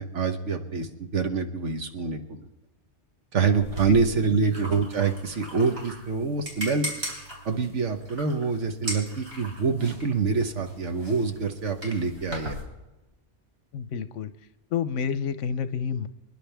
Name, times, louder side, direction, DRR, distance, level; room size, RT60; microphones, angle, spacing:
voice 1, 0.0-2.4 3.3-6.9 7.4-12.6, right 5 dB, 75° right, 6 dB, 1.5 m, -26 dB
sound 1, 3.6-12.6, equal, 55° right, 4.3 m, -39 dB
voice 2, 13.7-14.3 14.7-16.1, left 7 dB, 85° left, 12 dB, 1.1 m, -29 dB
26.5 x 10.5 x 3.5 m, 1.0 s
omnidirectional pair, 1.2 m